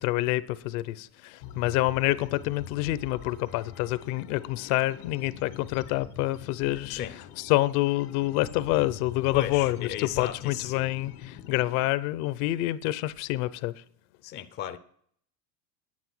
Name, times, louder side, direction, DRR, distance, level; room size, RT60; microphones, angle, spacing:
voice 1, 0.0-7.0 7.4-13.8, left 17 dB, 65° left, 0.8 m, -27 dB
sound 1, 1.4-11.9, left 8 dB, 85° left, 2.0 m, -44 dB
voice 2, 9.3-10.9 14.2-14.8, left 11 dB, 25° left, 0.4 m, -35 dB
9.8 x 9.5 x 6.2 m
cardioid pair, 155°, 45 cm